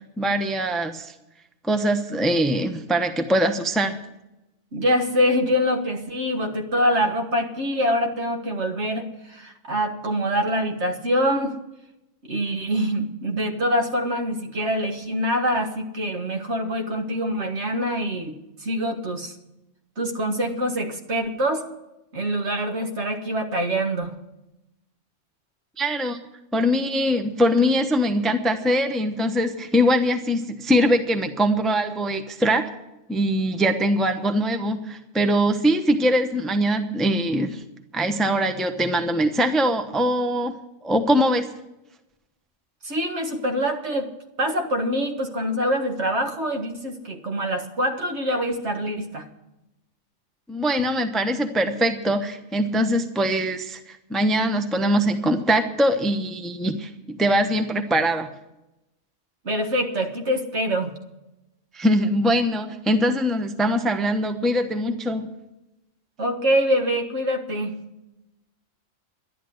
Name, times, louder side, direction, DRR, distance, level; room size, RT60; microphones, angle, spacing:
voice 1, 0.2-1.1 1.6-4.0 25.8-26.2 26.5-32.7 33.1-37.6 37.9-40.6 40.8-41.5 50.5-58.3 61.7-65.3, equal, ahead, 7 dB, 0.8 m, -22 dB
voice 2, 4.7-11.6 12.2-19.3 20.0-21.6 22.1-24.1 42.8-44.1 44.4-49.2 59.5-60.9 66.2-67.7, equal, 60° right, 4 dB, 1.9 m, -25 dB
12.0 x 11.0 x 7.8 m, 0.92 s
omnidirectional pair, 1.3 m